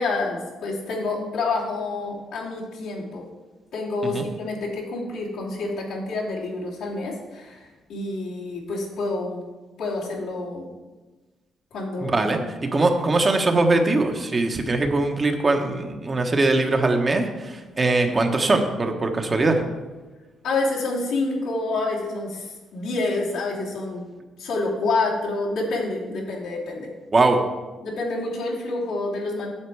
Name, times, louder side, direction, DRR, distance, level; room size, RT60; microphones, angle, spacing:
voice 1, 0.0-3.3 3.7-9.4 9.8-10.7 11.7-12.2 12.7-12.9 20.4-24.1 24.4-26.9 27.8-29.5, left 3 dB, 85° left, -5 dB, 2.9 m, -28 dB
voice 2, 12.0-19.6 27.1-27.4, right 2 dB, 30° right, 4 dB, 1.1 m, -21 dB
8.7 x 7.4 x 4.7 m, 1.2 s
cardioid pair, 90°, 0 cm